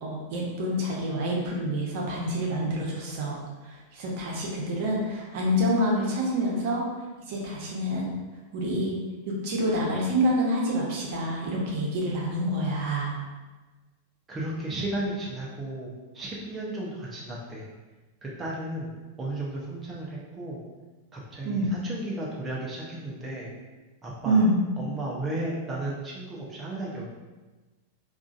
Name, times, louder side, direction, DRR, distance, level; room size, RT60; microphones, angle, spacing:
voice 1, 0.0-3.4 3.6-6.8 7.3-8.1 8.5-8.9 9.4-13.1 21.4-21.7 24.2-24.6, equal, 60° right, -3 dB, 0.9 m, -27 dB
voice 2, 14.3-17.7 18.2-18.9 19.2-20.6 21.1-23.5 24.0-24.4 24.8-27.1, right 1 dB, 20° right, -5 dB, 0.7 m, -34 dB
3.6 x 2.5 x 2.4 m, 1.2 s
hypercardioid pair, 110°, 0 cm